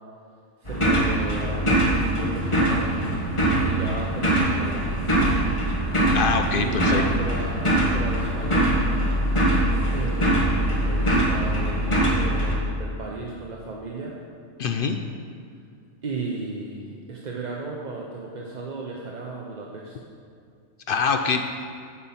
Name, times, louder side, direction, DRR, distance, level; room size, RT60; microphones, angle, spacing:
voice 1, 0.6-3.0 3.6-4.9 6.5-8.8 9.9-14.2 16.0-20.0, right 3 dB, 40° right, -2 dB, 0.7 m, -35 dB
sound 1, 0.7-12.5, right 1 dB, 25° left, 1.3 m, -22 dB
voice 2, 6.1-7.0 14.6-15.0 20.9-21.4, left 5 dB, 60° left, 6 dB, 0.6 m, -24 dB
8.4 x 7.0 x 5.6 m, 2.4 s
omnidirectional pair, 1.4 m